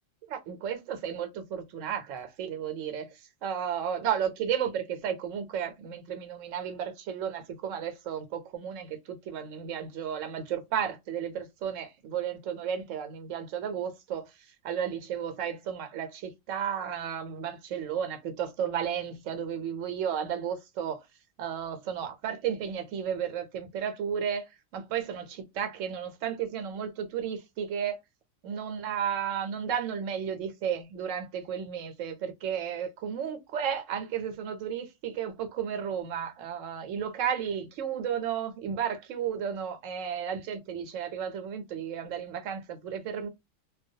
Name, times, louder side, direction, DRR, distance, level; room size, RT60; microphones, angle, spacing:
voice 1, 0.3-3.1 3.4-14.3 14.6-21.0 21.4-28.0 28.4-43.3, right 8 dB, 80° right, 0.9 m, -33 dB
2.2 x 2.1 x 2.6 m
omnidirectional pair, 1.3 m